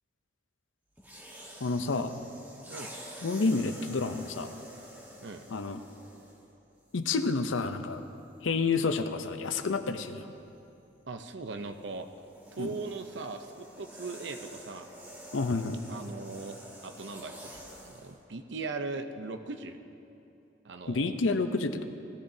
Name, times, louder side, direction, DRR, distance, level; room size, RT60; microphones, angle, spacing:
sound 1, 1.0-6.5 7.3-7.5 11.5-18.2, equal, 10° right, 1.3 m, -48 dB
voice 1, 1.6-2.1 3.2-4.5 5.5-5.8 6.9-8.0 8.4-10.3 12.6-12.7 15.3-15.8 20.9-21.8, left 3 dB, 90° left, 9 dB, 0.6 m, -29 dB
voice 2, 11.1-12.1 12.5-14.9 15.9-16.6 16.8-19.8 20.6-21.2, right 3 dB, 65° right, 7 dB, 0.7 m, -39 dB
17.5 x 13.5 x 2.8 m, 2.8 s
head